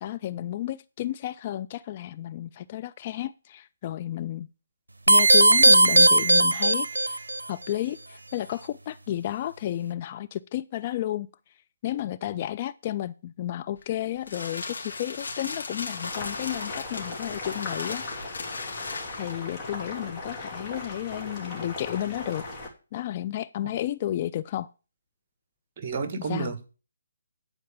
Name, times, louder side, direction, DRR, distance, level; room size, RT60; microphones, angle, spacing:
voice 1, 0.0-4.5 5.1-11.3 11.8-18.0 19.2-22.4 22.9-24.7 26.2-26.5, left 12 dB, 35° left, 0.4 m, -32 dB
sound 1, 5.1-7.4, right 2 dB, 75° right, 0.7 m, -17 dB
sound 2, 13.8-19.5, left 3 dB, 65° left, 2.8 m, -37 dB
Boiling, 15.9-22.7, left 2 dB, 15° left, 2.9 m, -38 dB
voice 2, 25.8-26.7, right 5 dB, 35° right, 1.5 m, -31 dB
10.0 x 4.7 x 7.3 m
figure-of-eight pair, 140°, 0 cm